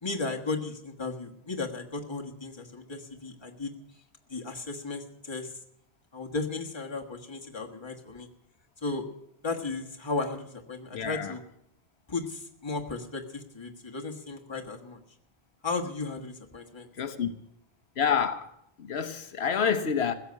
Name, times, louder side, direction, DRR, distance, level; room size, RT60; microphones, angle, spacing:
voice 1, 0.0-3.7 4.3-5.5 6.1-8.3 8.8-9.0 9.4-11.4 12.1-15.0 15.6-16.9, left 3 dB, 25° left, 1.5 m, -35 dB
voice 2, 10.9-11.3 17.0-17.3 18.0-18.5 18.8-20.1, left 7 dB, 85° left, 1.2 m, -28 dB
16.0 x 7.2 x 9.6 m
omnidirectional pair, 1.0 m